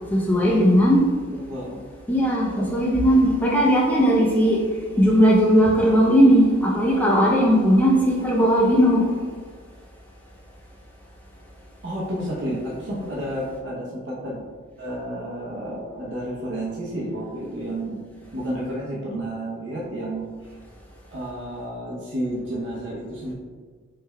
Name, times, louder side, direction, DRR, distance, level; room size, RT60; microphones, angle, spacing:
voice 1, 0.1-1.0 2.1-4.6 5.0-9.1, equal, 10° left, -3 dB, 0.6 m, -17 dB
voice 2, 1.3-1.8 11.8-14.4 14.8-18.0 18.3-20.5 21.1-23.3, right 1 dB, 55° right, -5 dB, 0.8 m, -31 dB
3.3 x 3.3 x 3.3 m, 1.5 s
head